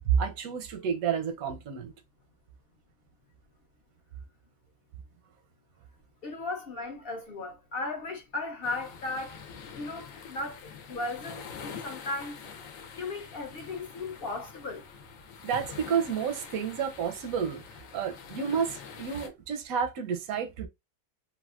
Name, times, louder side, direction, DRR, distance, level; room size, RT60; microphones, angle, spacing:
voice 1, 0.2-1.9 15.4-17.6 17.9-20.7, right 7 dB, 90° right, 1.1 m, -31 dB
voice 2, 6.2-9.4 9.7-12.4 13.0-14.8, left 2 dB, 55° left, 0.7 m, -36 dB
sound 1, 8.6-19.3, left 6 dB, 75° left, 1.0 m, -45 dB
3.4 x 2.4 x 2.3 m
omnidirectional pair, 1.4 m